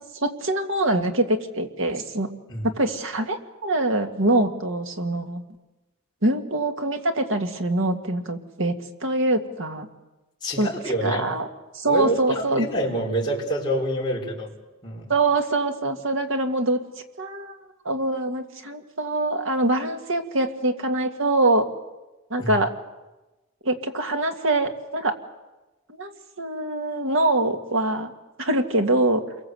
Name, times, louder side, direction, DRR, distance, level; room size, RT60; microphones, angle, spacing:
voice 1, 0.2-2.3 2.6-5.4 6.2-9.9 10.6-10.7 11.0-11.5 11.7-12.7 15.1-16.8 17.2-17.6 17.9-21.7 22.3-22.7 23.6-25.2 26.0-26.1 26.4-28.1 28.4-29.2, right 2 dB, 65° right, 5 dB, 2.1 m, -24 dB
voice 2, 10.4-11.3 11.8-14.5 14.8-15.1 22.4-22.5, right 1 dB, 20° left, -4 dB, 5.1 m, -27 dB
28.0 x 23.0 x 8.0 m, 1.1 s
head